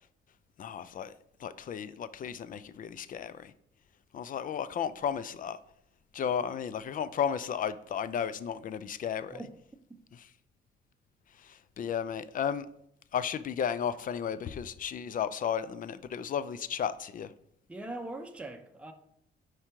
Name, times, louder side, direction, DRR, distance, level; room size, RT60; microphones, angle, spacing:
voice 1, 0.6-1.1 1.4-3.5 4.1-5.6 6.1-9.4 11.4-12.7 13.1-17.3, left 8 dB, 45° left, 0.4 m, -34 dB
voice 2, 17.7-18.9, right 2 dB, 5° right, 0.7 m, -41 dB
4.8 x 4.5 x 4.5 m
cardioid pair, 90°, 20 cm